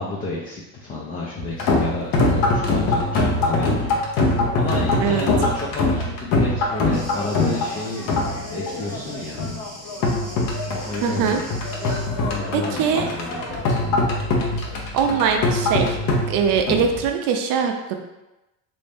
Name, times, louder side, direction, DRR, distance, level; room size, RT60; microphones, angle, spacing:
voice 1, 0.0-2.1 2.3-4.0 4.3-8.1 8.5-9.4 10.7-11.5 12.2-14.2, left 2 dB, 20° left, -5 dB, 0.4 m, -31 dB
sound 1, 1.4-17.1, left 2 dB, 55° left, 0.8 m, -23 dB
Thunder, 6.9-12.1, equal, ahead, 0.8 m, -40 dB
voice 2, 11.0-11.4 12.5-13.1 14.9-16.0 16.3-18.0, right 7 dB, 55° right, 5 dB, 0.6 m, -21 dB
3.1 x 2.6 x 3.4 m, 0.97 s
cardioid pair, 125°, 40 cm